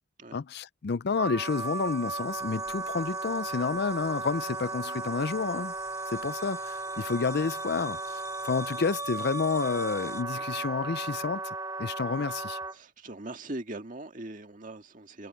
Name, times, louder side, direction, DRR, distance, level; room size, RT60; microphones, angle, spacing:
voice 1, 0.3-5.7 6.1-12.6, left 5 dB, 50° left, 0.5 m, -30 dB
Wind instrument woodwind instrument, 1.1-12.7, right 3 dB, 20° right, 2.1 m, -35 dB
sound 1, 1.4-10.2, left 4 dB, 15° left, 4.0 m, -50 dB
voice 2, 12.7-15.3, right 2 dB, 40° right, 1.9 m, -41 dB
head